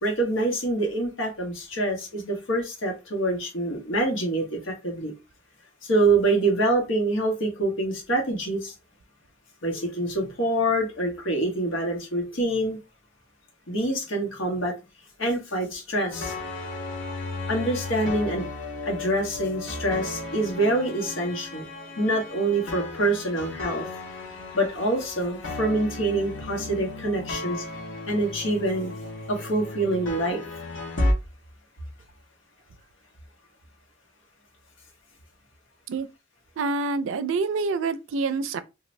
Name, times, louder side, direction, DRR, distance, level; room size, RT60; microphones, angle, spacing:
voice 1, 0.0-5.1 5.8-8.7 9.6-12.8 13.7-14.7 15.2-16.3 17.5-18.4 18.9-23.8 24.5-27.6 28.1-28.9 29.3-30.4, right 1 dB, 90° left, 1.1 m, -26 dB
sound 1, 16.1-31.1, left 2 dB, 70° left, 0.9 m, -34 dB
voice 2, 36.6-38.6, right 4 dB, 75° right, 0.4 m, -26 dB
2.6 x 2.4 x 3.1 m
head